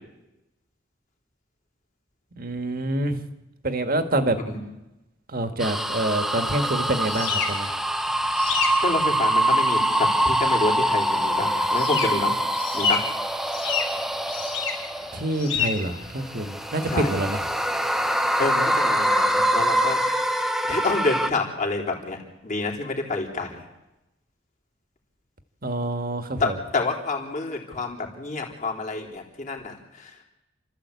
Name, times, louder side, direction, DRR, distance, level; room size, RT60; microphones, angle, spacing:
voice 1, 2.3-3.2 3.6-4.4 5.3-7.7 15.1-17.4 25.6-26.6, right 1 dB, 50° right, 8 dB, 1.7 m, -26 dB
sound 1, 5.6-15.5 16.1-21.3, right 1 dB, ahead, 0.8 m, -24 dB
sound 2, 6.4-19.6, left 6 dB, 85° left, 4.0 m, -32 dB
voice 2, 8.8-12.3 12.7-13.1 16.9-17.1 18.2-20.4 20.7-23.6 26.4-30.2, left 3 dB, 40° left, 0 dB, 3.6 m, -28 dB
29.0 x 13.5 x 8.4 m, 1.0 s
head